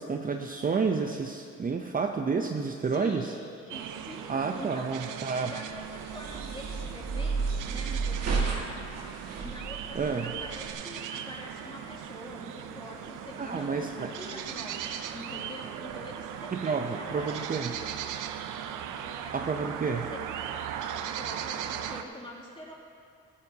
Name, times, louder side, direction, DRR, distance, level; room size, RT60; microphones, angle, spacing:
voice 1, 0.0-3.3 4.3-5.5 9.9-10.3 13.4-14.1 16.5-17.7 19.3-20.0, right 5 dB, 30° right, 4 dB, 0.6 m, -30 dB
voice 2, 2.9-9.0 9.4-17.9 18.9-20.2 21.0-22.7, left 1 dB, 15° left, -3 dB, 2.7 m, -45 dB
sound 1, 3.7-22.0, right 9 dB, 85° right, 0.7 m, -38 dB
sound 2, 5.7-10.7, right 4 dB, 55° right, 1.9 m, -32 dB
18.5 x 13.5 x 2.8 m, 2.4 s
cardioid pair, 90°, 30 cm